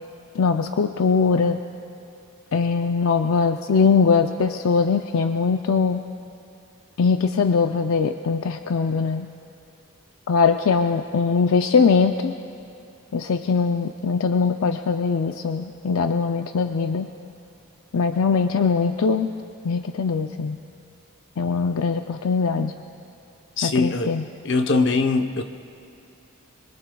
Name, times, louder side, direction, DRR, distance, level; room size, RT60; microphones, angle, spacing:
voice 1, 0.4-1.6 2.5-6.0 7.0-9.3 10.3-12.3 13.1-17.1 17.9-19.3 19.6-20.6 21.4-22.7 23.6-24.2, left 5 dB, 75° left, 6 dB, 0.5 m, -21 dB
voice 2, 23.6-24.2 24.4-25.4, left 3 dB, 55° left, 6 dB, 0.8 m, -21 dB
25.5 x 23.0 x 2.3 m, 2.8 s
head